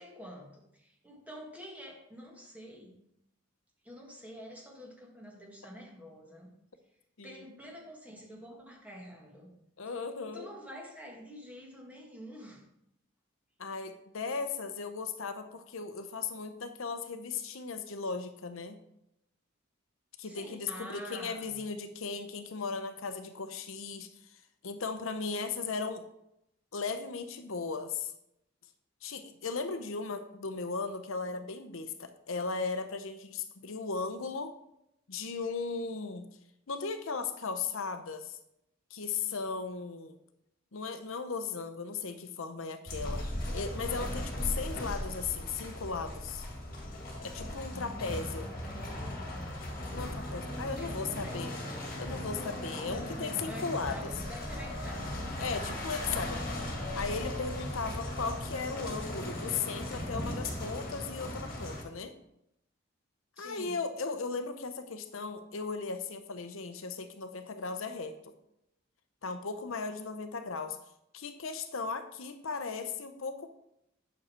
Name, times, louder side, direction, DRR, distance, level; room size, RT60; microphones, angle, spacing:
voice 1, 0.0-3.0 3.8-6.6 7.2-9.6 10.2-12.6 20.3-21.7 47.9-49.2 50.8-51.6 52.9-55.4 63.4-63.8, equal, 5° right, -2 dB, 1.8 m, -48 dB
voice 2, 9.8-10.5 13.6-18.8 20.2-24.4 24.6-26.0 26.7-28.1 29.0-34.5 35.1-36.3 36.7-38.4 38.9-40.2 40.7-43.2 43.5-46.5 47.2-48.5 49.9-51.5 52.0-54.1 55.4-56.7 56.9-62.1 63.4-68.3 69.2-70.8 71.1-73.5, left 4 dB, 75° left, 9 dB, 0.7 m, -37 dB
sound 1, 42.9-61.8, left 1 dB, 45° left, 2.0 m, -37 dB
9.1 x 6.5 x 4.3 m, 0.80 s
head